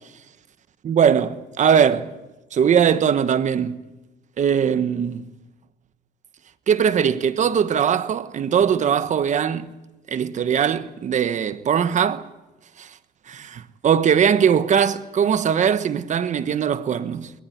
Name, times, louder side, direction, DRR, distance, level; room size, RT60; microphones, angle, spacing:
voice 1, 0.8-2.1 2.5-3.8 4.4-5.2 6.7-9.7 10.1-12.2 12.8-12.9 13.3-17.3, right 8 dB, 45° right, 1.2 m, -20 dB
20.5 x 19.0 x 10.0 m
cardioid pair, 110°, 17 cm